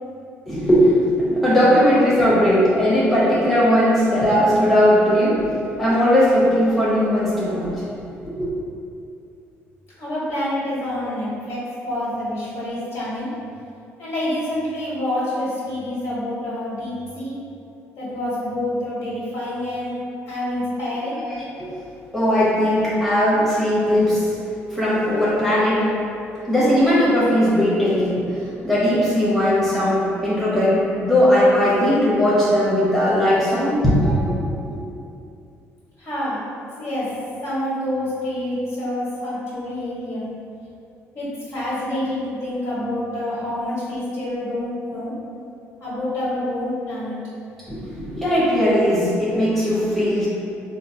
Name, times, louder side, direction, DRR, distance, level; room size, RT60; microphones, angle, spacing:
voice 1, 0.5-5.4 5.8-7.7 8.2-8.5 21.3-21.7 22.1-24.3 24.7-25.8 26.5-34.4 47.7-50.3, equal, ahead, -10 dB, 1.0 m, -18 dB
voice 2, 10.0-13.3 14.0-17.4 18.0-20.0 20.3-21.2 36.0-36.4 36.8-37.1 37.4-40.3 41.1-45.1 45.8-47.2, left 1 dB, 60° left, -9 dB, 1.5 m, -27 dB
3.7 x 2.0 x 2.8 m, 2.6 s
cardioid pair, 85°, 5 cm